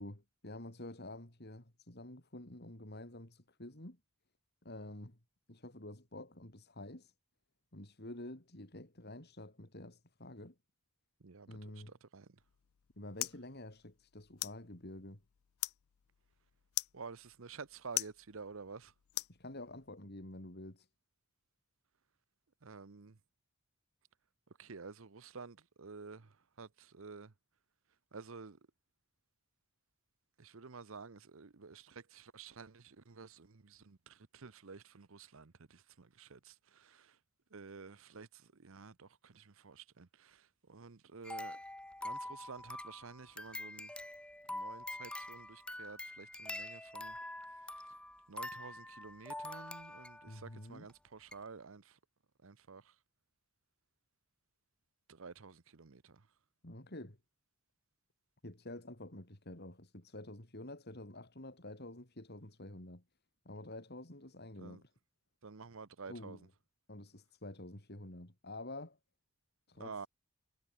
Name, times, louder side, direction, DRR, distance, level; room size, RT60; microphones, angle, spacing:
voice 1, 0.0-4.0 4.6-5.2 5.5-7.1 7.7-10.5 11.5-11.9 13.0-15.2 19.3-20.9 50.3-50.9 56.6-57.2 58.4-63.0 63.4-64.9 66.1-66.5 66.9-69.0 69.7-70.1, left 1 dB, 45° left, 3.4 m, -49 dB
voice 2, 11.2-12.4 16.9-18.9 22.6-23.2 24.6-27.3 28.1-28.6 30.4-37.2 37.5-41.6 42.0-43.9 44.5-47.2 48.3-52.0 52.4-52.9 55.1-56.2 64.6-64.8 65.4-66.4 69.8-70.1, right 4 dB, 60° right, 0.8 m, -51 dB
sound 1, 12.4-19.9, left 19 dB, 70° left, 0.4 m, -44 dB
sound 2, 41.2-50.4 50.9-51.0 51.3-51.4, left 1 dB, 5° left, 0.9 m, -45 dB
head